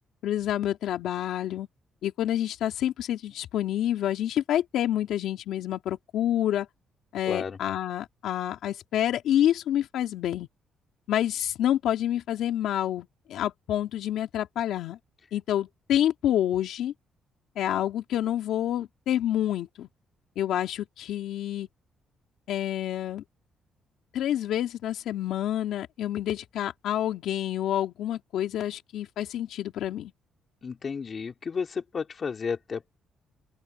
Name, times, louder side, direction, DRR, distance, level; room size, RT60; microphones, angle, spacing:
voice 1, 0.2-1.7 2.0-6.7 7.1-10.5 11.1-15.0 15.3-16.9 17.6-19.9 20.4-21.7 22.5-23.2 24.1-30.1, left 11 dB, 80° left, 2.7 m, -28 dB
voice 2, 7.2-7.6 30.6-33.0, left 5 dB, 45° left, 3.5 m, -32 dB
open air
cardioid pair, 90°, 0 cm